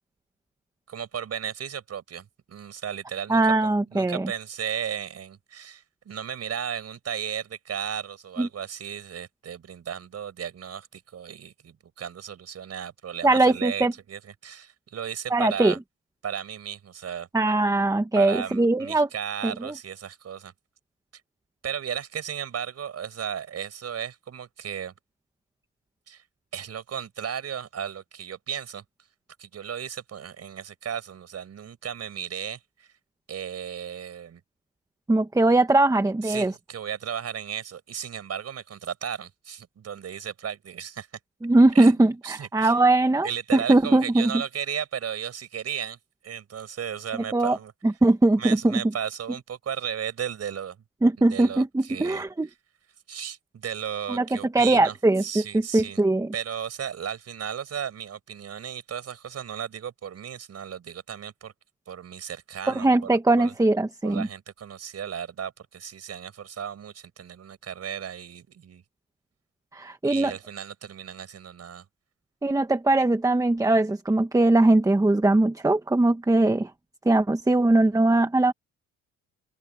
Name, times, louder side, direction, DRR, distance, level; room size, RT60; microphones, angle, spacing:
voice 1, 0.9-15.8 16.2-17.3 18.1-20.5 21.6-24.9 26.1-26.2 26.5-28.8 29.4-32.9 33.3-34.4 36.2-41.1 41.7-42.8 43.2-46.0 46.2-47.7 48.4-50.8 51.3-52.2 53.1-55.0 55.2-56.0 56.3-61.5 61.9-63.5 64.0-68.8 70.0-71.9, right 8 dB, 55° right, 5.6 m, -35 dB
voice 2, 3.3-4.3 8.4-8.5 13.2-13.9 15.3-15.7 17.3-19.1 19.4-19.7 35.1-36.5 41.4-44.3 47.3-47.6 47.8-48.8 51.0-52.5 54.1-54.2 54.5-55.4 55.7-56.3 62.7-64.3 69.7-70.3 72.4-76.7 77.0-78.5, right 2 dB, 10° right, 1.3 m, -21 dB
open air
cardioid pair, 90°, 30 cm